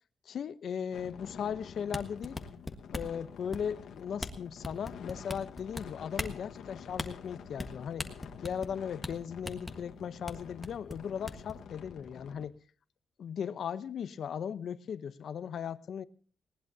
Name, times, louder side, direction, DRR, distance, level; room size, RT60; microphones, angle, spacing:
voice 1, 0.3-2.4 2.9-8.1 8.4-12.6 13.2-16.0, left 8 dB, 65° left, 0.8 m, -37 dB
sound 1, 0.9-12.5, left 7 dB, 85° left, 1.5 m, -49 dB
sound 2, 1.8-3.2 3.5-3.8 4.2-4.3 4.6-5.8 6.1-6.4 6.9-7.1 7.6-7.7 8.0-8.7 9.0-9.1 9.4-9.7 10.3-10.4 10.6-11.5, left 2 dB, 15° left, 1.5 m, -38 dB
20.0 x 18.5 x 2.8 m
cardioid pair, 120°, 0 cm